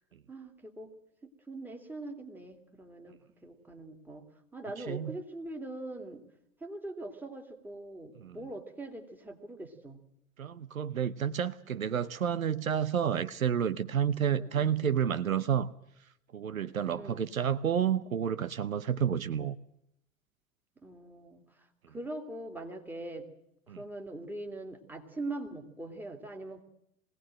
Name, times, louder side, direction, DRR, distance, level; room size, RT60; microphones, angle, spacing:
voice 1, 0.3-0.9 1.2-4.3 4.5-6.2 6.6-10.0 14.4-15.1 16.9-17.3 20.8-23.3 23.8-26.6, right 2 dB, 5° right, 2.3 m, -42 dB
voice 2, 10.4-15.7 16.3-19.6 23.7-23.8, right 8 dB, 80° right, 0.8 m, -30 dB
21.5 x 17.5 x 7.5 m
figure-of-eight pair, 90°, 41 cm